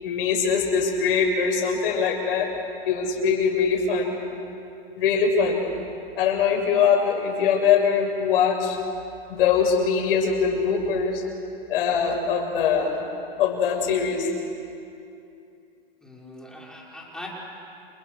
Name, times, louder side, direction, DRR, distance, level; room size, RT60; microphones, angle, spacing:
voice 1, 0.0-2.5 2.9-4.2 5.0-5.7 6.2-8.8 9.3-11.2 11.7-13.0 13.4-14.3, left 6 dB, 65° left, 2 dB, 7.0 m, -22 dB
voice 2, 16.0-17.3, left 1 dB, ahead, -4 dB, 5.9 m, -41 dB
30.0 x 29.5 x 6.7 m, 2.7 s
hypercardioid pair, 135°, 30 cm